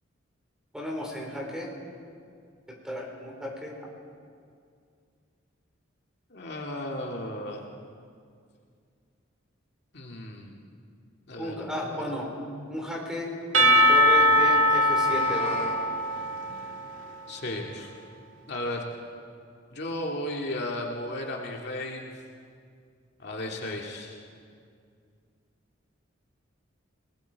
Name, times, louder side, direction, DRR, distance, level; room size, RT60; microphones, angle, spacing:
voice 1, 0.7-1.7 2.8-3.7 11.4-12.3 12.7-15.6, left 1 dB, 5° right, -2 dB, 4.5 m, -33 dB
voice 2, 6.3-7.7 9.9-10.6 11.3-12.1 17.3-17.9 18.5-18.9 19.7-22.1 23.2-24.2, left 1 dB, 55° left, 0 dB, 2.1 m, -35 dB
Percussion / Church bell, 13.5-17.4, equal, 85° right, 1.8 m, -22 dB
Meow, 14.7-15.8, left 3 dB, 35° left, 2.8 m, -38 dB
29.5 x 20.5 x 4.6 m, 2.3 s
head